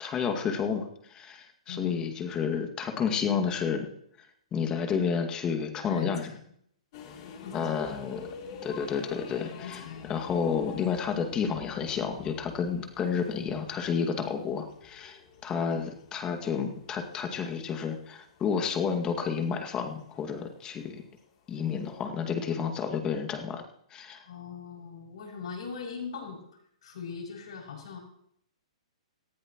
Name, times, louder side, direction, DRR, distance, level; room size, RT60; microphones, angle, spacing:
voice 1, 0.0-3.9 4.5-6.3 7.5-8.3 8.6-21.0 21.5-23.6 23.9-24.2, left 6 dB, 20° left, 5 dB, 2.1 m, -31 dB
voice 2, 1.7-2.1 5.9-6.4 7.4-7.8 9.5-10.1 15.7-15.8 24.2-26.4 26.8-28.0, left 6 dB, 65° left, -1 dB, 6.5 m, -40 dB
sound 1, 6.9-22.0, left 6 dB, 45° left, 3.1 m, -49 dB
18.5 x 15.0 x 3.1 m, 0.70 s
figure-of-eight pair, 120°, 3 cm